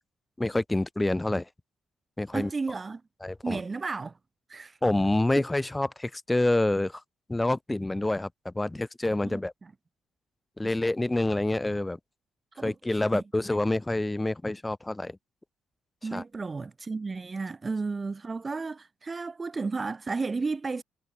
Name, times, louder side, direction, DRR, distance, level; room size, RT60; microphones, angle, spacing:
voice 1, 0.4-1.5 2.2-2.5 3.2-3.6 4.8-7.0 7.3-9.5 10.6-12.0 12.6-15.2 16.1-16.2, left 2 dB, 10° left, 0.9 m, -27 dB
voice 2, 2.3-3.0 3.4-4.1 4.5-4.7 5.3-5.4 9.2-9.4 10.6-10.7 12.6-12.7 13.1-13.2 16.0-20.8, right 4 dB, 30° right, 1.4 m, -33 dB
cardioid pair, 90°, 0 cm